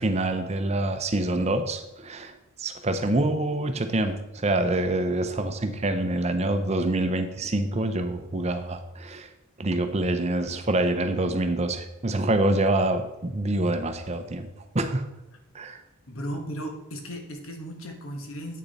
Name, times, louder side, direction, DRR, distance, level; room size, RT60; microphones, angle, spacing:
voice 1, 0.0-2.3 2.6-9.3 9.6-14.5 14.7-15.1 15.5-15.8, right 2 dB, 30° right, 8 dB, 0.6 m, -26 dB
voice 2, 16.1-18.6, equal, 70° left, 4 dB, 1.4 m, -36 dB
8.5 x 6.8 x 4.1 m, 0.92 s
head